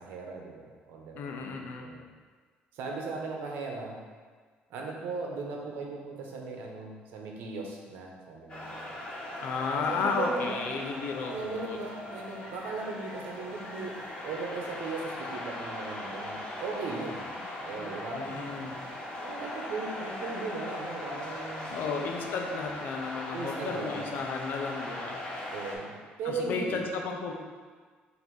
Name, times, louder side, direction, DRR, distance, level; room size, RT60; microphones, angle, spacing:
voice 1, 0.0-1.4 1.8-2.0 2.7-4.0 4.7-8.9 9.9-10.6 11.3-13.9 14.2-17.3 17.6-18.5 19.2-21.8 23.3-24.0 25.5-26.8, right 3 dB, 80° right, 0 dB, 1.1 m, -37 dB
voice 2, 1.2-1.9 9.4-11.8 17.1-18.8 21.7-25.2 26.2-27.3, left 4 dB, 65° left, 3 dB, 0.8 m, -34 dB
sound 1, 8.5-25.7, left 1 dB, 25° left, 1.3 m, -39 dB
Trumpet, 10.6-14.0, right 1 dB, 30° right, 1.4 m, -52 dB
6.2 x 2.9 x 5.5 m, 1.5 s
cardioid pair, 140°, 4 cm